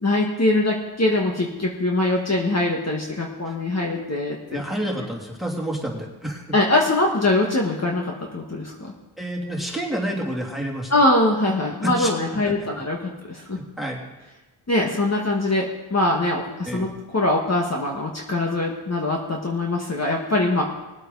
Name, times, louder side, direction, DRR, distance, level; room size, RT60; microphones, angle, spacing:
voice 1, 0.0-4.6 6.5-8.9 10.9-13.6 14.7-20.6, left 2 dB, 35° left, -1 dB, 1.7 m, -23 dB
voice 2, 4.5-6.4 9.2-10.9 11.8-12.1 12.4-12.5 13.6-14.0 16.6-16.9, right 1 dB, ahead, -1 dB, 2.9 m, -29 dB
19.5 x 8.1 x 4.0 m, 1.1 s
cardioid pair, 65°, 45 cm